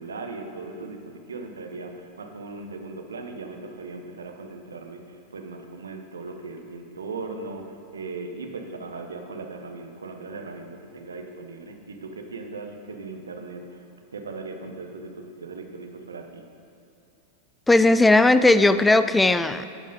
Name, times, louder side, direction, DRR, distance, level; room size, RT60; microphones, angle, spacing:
voice 1, 0.0-16.5, right 3 dB, 70° right, 4 dB, 0.9 m, -38 dB
voice 2, 17.7-19.7, left 2 dB, 10° left, 12 dB, 0.3 m, -17 dB
12.0 x 5.4 x 5.1 m, 2.4 s
figure-of-eight pair, 90°, 0 cm